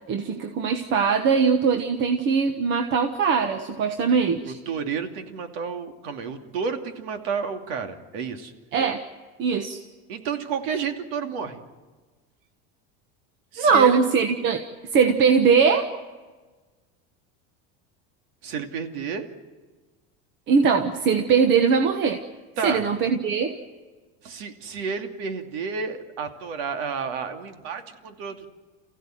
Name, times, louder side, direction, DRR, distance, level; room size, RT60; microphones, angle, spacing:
voice 1, 0.1-4.6 8.7-9.0 9.4-9.8 13.6-14.6 14.9-15.9 20.5-22.2 22.6-23.6, right 6 dB, 40° right, 7 dB, 1.3 m, -21 dB
voice 2, 4.5-8.5 10.1-11.6 13.5-14.0 18.4-19.3 22.6-22.8 24.2-28.5, right 5 dB, 80° right, 5 dB, 2.7 m, -31 dB
29.5 x 16.0 x 9.2 m, 1.3 s
cardioid pair, 160°, 30 cm